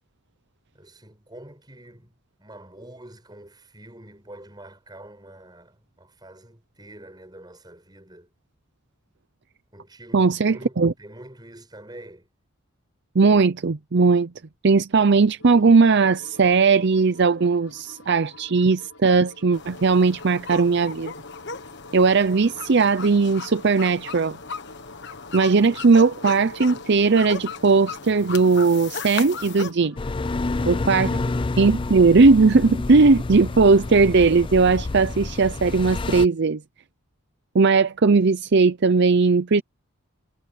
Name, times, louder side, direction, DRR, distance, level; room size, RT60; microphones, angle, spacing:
voice 1, 0.7-8.3 9.7-12.3 31.2-31.6, right 1 dB, 20° right, 7.8 m, -46 dB
voice 2, 10.1-10.9 13.1-14.3 14.6-21.1 21.9-24.4 25.3-29.9 30.7-31.2 31.6-36.6 37.5-39.6, right 4 dB, 55° right, 0.6 m, -18 dB
sound 1, 15.4-31.0, left 2 dB, 80° left, 7.6 m, -48 dB
sound 2, 19.5-29.7, left 5 dB, 55° left, 1.5 m, -37 dB
sound 3, 30.0-36.3, left 3 dB, 25° left, 0.4 m, -28 dB
head